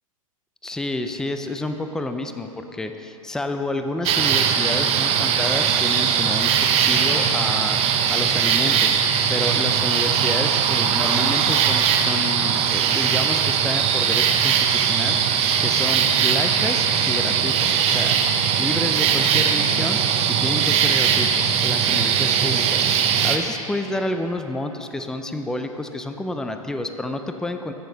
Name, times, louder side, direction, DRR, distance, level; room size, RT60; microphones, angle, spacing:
voice 1, 0.6-7.8 8.1-18.2 18.6-20.0 20.3-27.7, left 2 dB, 5° left, 7 dB, 0.4 m, -29 dB
sound 1, 4.0-23.4, right 8 dB, 35° right, 0.8 m, -20 dB
14.0 x 6.4 x 4.0 m, 3.0 s
hypercardioid pair, 110°, 18 cm